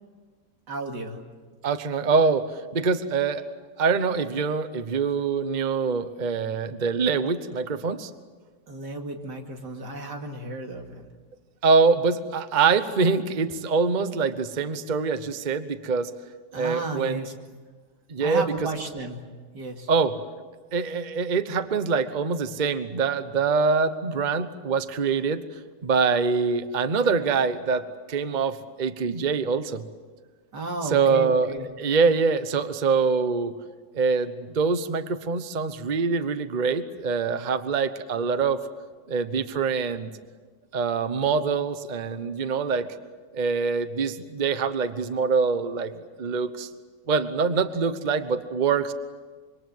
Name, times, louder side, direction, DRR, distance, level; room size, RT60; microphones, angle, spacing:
voice 1, 0.7-1.2 8.7-11.1 16.5-17.3 18.2-19.2 19.5-19.9 30.5-31.7, right 3 dB, 85° right, 3 dB, 3.0 m, -33 dB
voice 2, 1.6-2.5 2.7-3.4 3.8-8.1 11.6-16.1 16.5-17.2 18.1-18.4 19.9-20.1 20.7-25.4 25.8-29.8 30.9-31.5 31.8-33.5 33.9-38.6 39.1-40.1 40.7-42.9 43.3-45.9 46.2-46.7 47.1-48.9, right 5 dB, 30° right, 11 dB, 1.0 m, -24 dB
26.0 x 24.0 x 7.8 m, 1.4 s
omnidirectional pair, 1.8 m